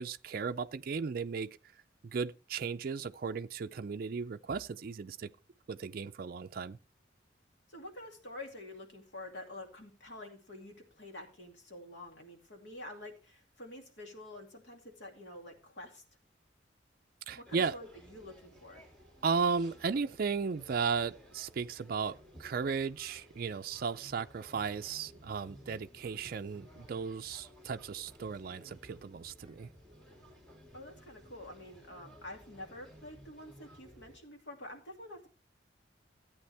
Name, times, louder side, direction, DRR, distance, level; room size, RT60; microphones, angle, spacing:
voice 1, 0.0-1.5 2.0-5.3 5.7-6.8 17.3-17.8 19.2-29.7, right 5 dB, 50° right, 0.4 m, -35 dB
voice 2, 7.7-16.0 17.3-18.8 30.7-35.3, left 1 dB, 70° left, 2.4 m, -48 dB
sound 1, 17.4-34.2, equal, 5° left, 2.1 m, -57 dB
14.5 x 8.5 x 3.4 m
head